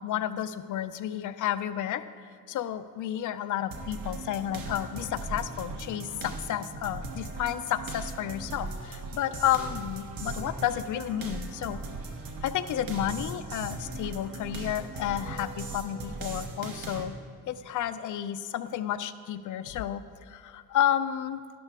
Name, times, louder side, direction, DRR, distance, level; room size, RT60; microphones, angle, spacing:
voice 1, 0.0-2.0 2.5-11.8 12.4-17.1 17.5-21.4, left 11 dB, 65° left, 12 dB, 0.5 m, -31 dB
sound 1, 3.7-17.0, right 3 dB, 75° right, 1.3 m, -38 dB
12.0 x 11.5 x 3.6 m, 2.3 s
cardioid pair, 180°, 34 cm